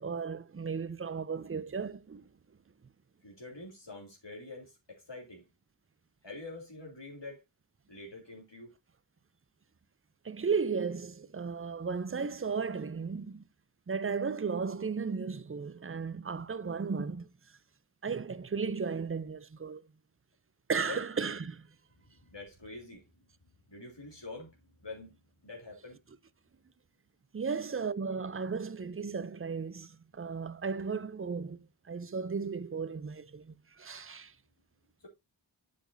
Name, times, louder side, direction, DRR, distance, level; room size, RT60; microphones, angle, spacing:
voice 1, 0.0-2.2 10.2-13.4 13.9-17.3 18.0-19.8 20.7-21.7 27.3-34.3, right 5 dB, 30° right, 0.5 m, -35 dB
voice 2, 3.2-5.4 6.2-7.4 7.9-8.7 20.8-21.0 22.2-23.0 23.7-25.2 25.4-26.0 27.7-27.8 35.0-35.1, left 2 dB, 60° left, 2.6 m, -46 dB
10.0 x 5.2 x 2.6 m
wide cardioid pair, 40°, 48 cm